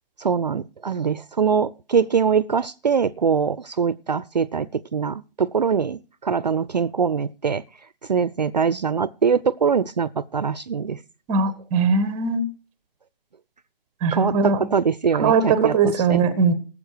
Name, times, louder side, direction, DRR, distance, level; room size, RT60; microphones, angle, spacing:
voice 1, 0.2-7.6 8.1-11.0 14.1-16.2, right 6 dB, 45° right, 0.5 m, -23 dB
voice 2, 11.3-12.5 14.0-14.7 15.2-16.5, right 5 dB, 10° right, 0.7 m, -20 dB
18.5 x 7.4 x 4.6 m
figure-of-eight pair, 140°, 29 cm